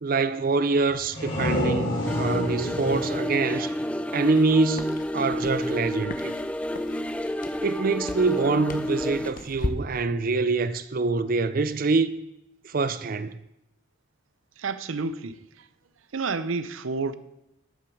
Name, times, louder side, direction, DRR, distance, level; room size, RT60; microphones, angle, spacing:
voice 1, 0.0-3.7 4.1-6.3 7.6-12.1 12.6-13.4, right 4 dB, 45° right, 0.5 m, -25 dB
sound 1, 0.9-4.5, left 1 dB, 65° left, 3.5 m, -29 dB
sound 2, 2.1-9.3, left 1 dB, 5° left, 0.3 m, -30 dB
sound 3, 4.2-9.7, left 2 dB, 45° left, 0.9 m, -39 dB
voice 2, 14.6-15.7 16.1-17.2, right 4 dB, 85° right, 0.6 m, -30 dB
13.0 x 6.0 x 4.8 m
head